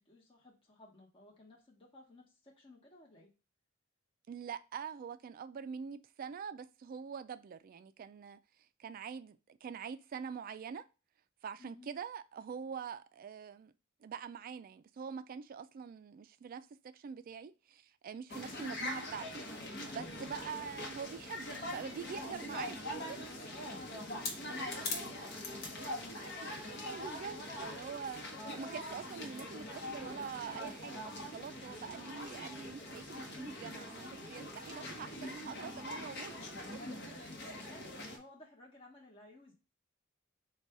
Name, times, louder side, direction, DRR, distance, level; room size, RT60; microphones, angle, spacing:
voice 1, 0.0-3.3 11.6-11.9 23.2-25.7 37.4-39.5, left 2 dB, 25° left, 1.0 m, -57 dB
voice 2, 4.3-8.4 8.8-10.8 11.4-13.7 14.0-19.4 19.9-23.2 26.4-26.5 26.8-28.2 28.5-36.3, right 6 dB, 45° right, 0.3 m, -44 dB
sound 1, 18.3-38.2, left 1 dB, 55° left, 0.9 m, -43 dB
4.0 x 2.3 x 4.6 m
head